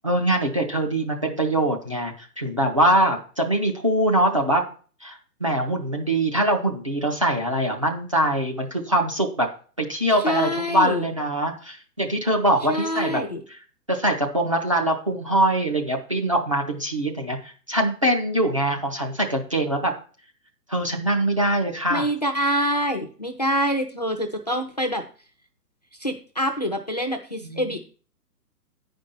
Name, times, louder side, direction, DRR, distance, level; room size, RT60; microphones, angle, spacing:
voice 1, 0.0-4.6 5.0-9.5 9.8-13.2 13.5-13.6 13.9-19.9 20.7-22.1 27.4-27.8, right 1 dB, 20° right, 0 dB, 0.5 m, -23 dB
voice 2, 10.2-11.0 12.7-13.4 21.9-25.0 26.0-27.8, equal, 25° left, 4 dB, 0.5 m, -26 dB
9.3 x 5.2 x 5.5 m, 0.40 s
figure-of-eight pair, 130°, 49 cm